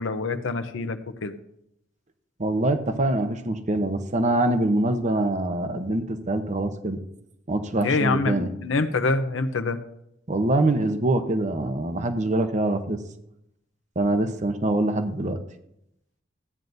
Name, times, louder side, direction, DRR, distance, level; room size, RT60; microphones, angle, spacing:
voice 1, 0.0-1.3 7.8-9.8, left 3 dB, 80° left, 8 dB, 0.7 m, -25 dB
voice 2, 2.4-7.0 7.5-8.5 10.3-13.0 14.0-15.4, right 2 dB, 40° right, 8 dB, 0.8 m, -24 dB
15.0 x 9.2 x 2.6 m, 0.78 s
head